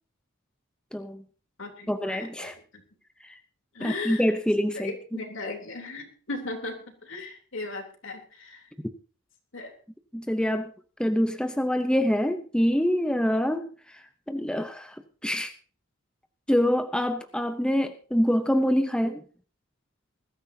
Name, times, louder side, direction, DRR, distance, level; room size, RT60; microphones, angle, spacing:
voice 1, 0.9-1.2 1.9-2.5 3.2-3.4 3.8-5.2 10.1-10.7 11.0-15.5 16.5-19.2, equal, 5° left, 7 dB, 0.8 m, -26 dB
voice 2, 1.6-2.5 3.7-4.2 4.7-8.6 9.5-9.7, left 3 dB, 65° left, 3 dB, 3.4 m, -37 dB
20.5 x 13.0 x 2.8 m, 0.39 s
head